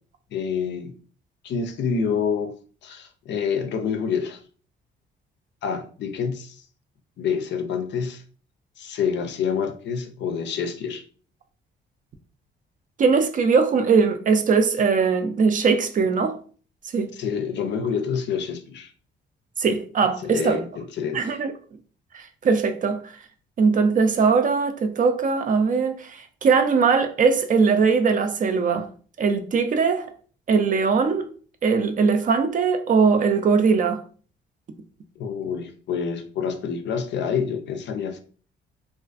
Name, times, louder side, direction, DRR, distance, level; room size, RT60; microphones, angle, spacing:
voice 1, 0.3-0.9 1.4-2.5 2.8-4.4 5.6-6.6 7.2-8.2 8.8-11.0 17.1-18.9 20.2-21.2 35.2-38.2, left 6 dB, 65° left, 0.5 m, -27 dB
voice 2, 13.0-16.4 16.9-17.1 19.6-20.6 21.1-21.5 22.1-23.0 23.6-26.1 26.4-28.9 29.2-30.1 30.5-31.3 31.6-34.0, right 5 dB, 40° right, 0.4 m, -20 dB
2.4 x 2.3 x 2.4 m
cardioid pair, 90°, 20 cm